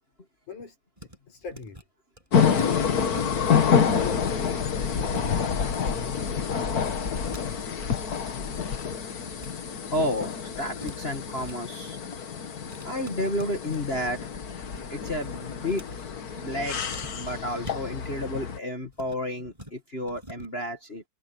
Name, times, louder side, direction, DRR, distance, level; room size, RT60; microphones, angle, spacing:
voice 1, 0.5-1.8 2.5-3.3 3.6-7.0, left 5 dB, 80° left, 7.3 m, -42 dB
sound 1, 1.0-1.2 1.4-1.8 2.2-2.3 2.6-3.7 4.0-4.1 4.5-5.3 5.6-6.0 7.0-7.9 8.4-9.5 9.8-10.2 10.4-11.6 12.7-14.2 14.4-14.8 15.1-16.1 16.9-18.3 18.8-19.2 19.5-19.7 20.0-20.5, equal, 10° right, 7.9 m, -46 dB
sound 2, 2.3-18.6, left 6 dB, 45° left, 1.2 m, -28 dB
voice 2, 9.9-10.3 10.6-12.0 12.8-14.2 14.9-15.8 16.3-16.8 17.1-21.0, left 1 dB, 25° left, 1.6 m, -31 dB
omnidirectional pair, 3.5 m